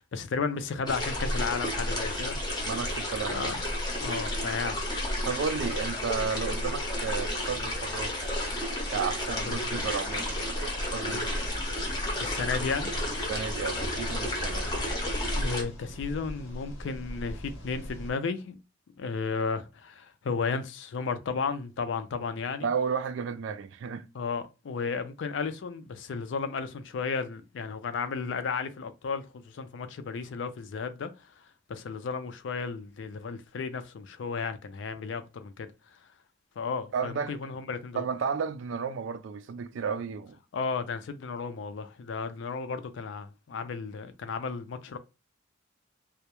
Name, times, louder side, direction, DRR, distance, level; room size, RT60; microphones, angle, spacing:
voice 1, 0.0-2.7 3.3-3.6 4.0-4.8 5.1-5.3 9.5-9.8 11.1-11.3 12.2-12.9 15.4-18.6 19.0-22.7 24.1-31.4 31.7-36.0 36.6-38.0 40.5-45.0, left 5 dB, 65° left, 0.3 m, -34 dB
sound 1, 0.9-15.6, left 1 dB, 20° left, 0.6 m, -31 dB
voice 2, 2.6-3.5 5.2-8.2 8.9-11.3 13.3-14.7 22.6-24.1 36.9-37.3 37.9-40.4, right 6 dB, 70° right, 0.3 m, -33 dB
sound 2, 11.3-18.1, equal, 85° left, 0.8 m, -40 dB
2.2 x 2.0 x 2.9 m
head